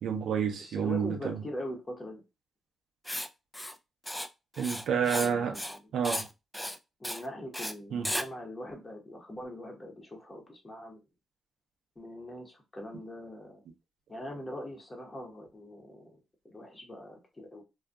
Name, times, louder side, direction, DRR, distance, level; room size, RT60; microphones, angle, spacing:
voice 1, 0.0-1.4 4.6-5.6 5.9-6.3 7.9-8.1, right 7 dB, 75° right, 0.5 m, -29 dB
voice 2, 0.6-2.2 5.1-5.8 7.0-11.0 12.0-13.6 14.1-16.2 16.4-17.6, left 1 dB, 25° left, 0.9 m, -42 dB
Writing, 3.0-3.3 3.5-3.7 4.0-4.3 4.5-5.3 5.5-5.8 6.0-6.3 6.5-6.8 7.0-7.2 7.5-7.7 8.0-8.2, left 1 dB, 5° left, 0.3 m, -35 dB
2.5 x 2.3 x 2.3 m
supercardioid pair, 60°, 0 cm